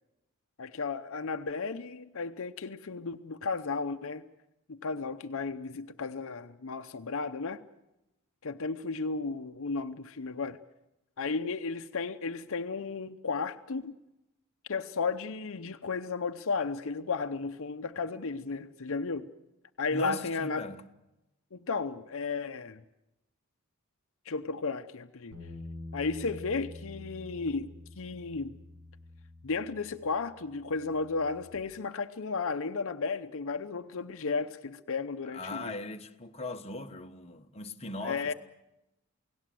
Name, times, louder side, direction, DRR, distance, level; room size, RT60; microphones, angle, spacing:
voice 1, 0.6-4.2 4.7-7.6 8.4-10.6 11.2-14.0 14.7-19.3 19.8-20.6 21.5-22.8 24.3-25.3 25.9-27.7 28.0-28.6 29.4-35.7 38.0-38.3, left 4 dB, 65° left, 0.8 m, -34 dB
voice 2, 19.9-20.8 35.3-38.3, left 2 dB, 30° left, 1.1 m, -39 dB
Bass guitar, 25.3-31.6, left 2 dB, 70° right, 7.6 m, -47 dB
28.5 x 18.0 x 7.7 m
head